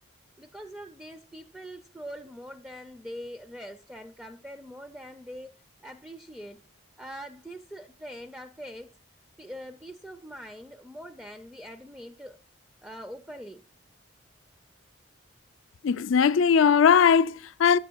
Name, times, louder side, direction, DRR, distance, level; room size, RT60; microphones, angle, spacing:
voice 1, 0.4-5.5 5.8-6.6 7.0-8.9 9.4-12.4 12.8-13.6, equal, 5° right, 0.3 m, -43 dB
voice 2, 15.8-17.8, left 6 dB, 75° left, 0.4 m, -20 dB
9.0 x 6.2 x 4.5 m
head